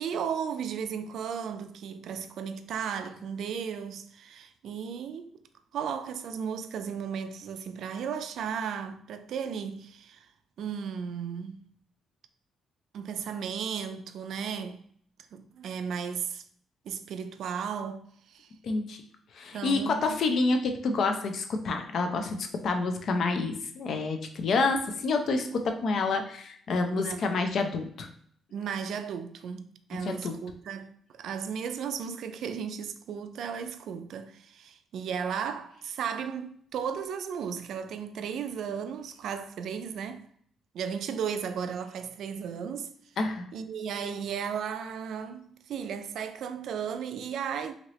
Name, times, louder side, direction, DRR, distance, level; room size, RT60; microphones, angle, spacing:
voice 1, 0.0-5.3 5.7-10.3 10.6-11.7 12.9-14.8 15.3-16.4 16.9-18.5 19.5-20.2 26.9-27.3 28.5-40.3 40.7-42.9 43.5-47.7, right 7 dB, 70° right, 0.3 m, -35 dB
voice 2, 18.6-19.0 19.3-28.1 30.0-30.3 43.2-43.5, left 3 dB, 60° left, 0.5 m, -28 dB
2.8 x 2.8 x 3.0 m
cardioid pair, 90°, 0 cm